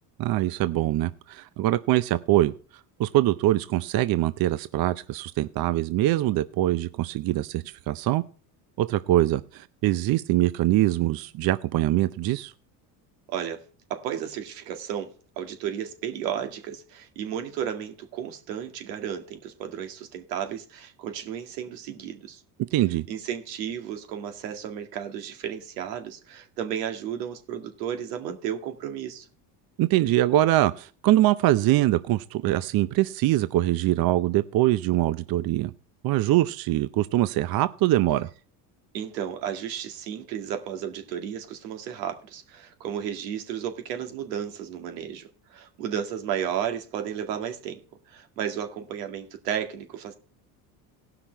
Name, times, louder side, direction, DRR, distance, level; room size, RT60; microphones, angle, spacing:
voice 1, 0.2-2.5 3.0-8.2 8.8-12.5 22.7-23.1 29.8-35.7 36.0-38.3, right 15 dB, 50° right, 0.6 m, -23 dB
voice 2, 13.3-13.6 13.9-22.4 23.1-29.3 38.9-47.8 48.1-50.1, right 9 dB, 85° right, 2.2 m, -33 dB
17.5 x 5.9 x 4.5 m
supercardioid pair, 90°, 47 cm